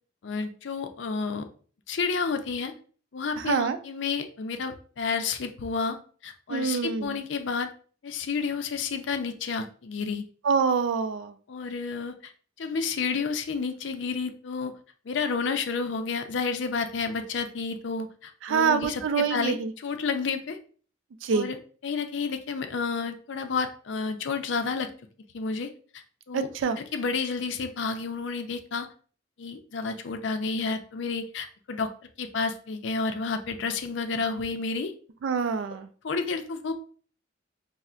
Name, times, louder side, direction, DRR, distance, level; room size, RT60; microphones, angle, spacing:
voice 1, 0.2-1.5 1.9-2.7 3.1-6.0 6.2-7.7 8.0-10.2 11.5-12.3 12.6-14.7 15.1-20.6 21.3-21.6 21.8-24.9 25.3-26.5 26.8-28.9 29.4-31.9 32.2-34.9 36.0-36.7, left 5 dB, 75° left, 7 dB, 0.5 m, -30 dB
voice 2, 3.5-3.8 6.5-7.2 10.4-11.3 18.4-19.7 21.2-21.5 26.3-26.8 35.2-35.9, right 6 dB, 85° right, 10 dB, 0.3 m, -25 dB
5.4 x 2.0 x 2.4 m, 0.43 s
head